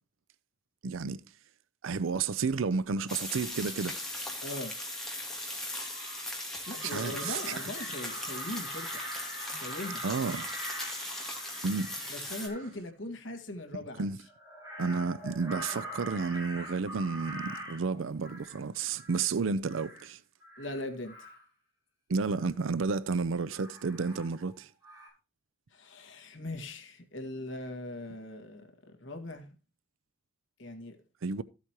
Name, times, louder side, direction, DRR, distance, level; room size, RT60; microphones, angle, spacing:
voice 1, 0.8-1.2 1.8-4.0 6.8-7.7 10.0-10.5 11.6-12.0 13.7-14.2 14.8-20.2 22.1-24.7 31.2-31.4, right 4 dB, 75° right, 0.5 m, -31 dB
sound 1, 3.1-12.5, left 1 dB, ahead, 2.5 m, -39 dB
voice 2, 4.4-4.7 6.7-9.0 9.5-10.0 12.1-14.1 20.6-21.1 25.7-29.5 30.6-31.0, left 1 dB, 65° left, 1.8 m, -40 dB
Crow, 5.3-5.4 5.7-6.3 6.6-12.7 14.3-18.6 18.9-19.3 19.7-20.1 20.4-21.4 22.2-22.5 23.5-24.6 24.8-25.1, right 1 dB, 15° right, 6.8 m, -44 dB
13.5 x 8.2 x 2.9 m
head